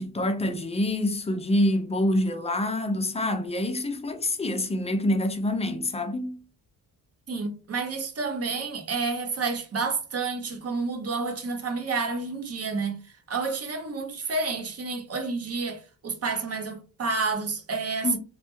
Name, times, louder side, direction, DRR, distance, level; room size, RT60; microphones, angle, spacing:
voice 1, 0.0-6.4 18.0-18.2, left 1 dB, 15° left, 0.5 m, -26 dB
voice 2, 7.3-13.0 13.3-18.2, right 4 dB, 40° right, 0.7 m, -30 dB
3.3 x 2.1 x 2.9 m
cardioid pair, 115°, 37 cm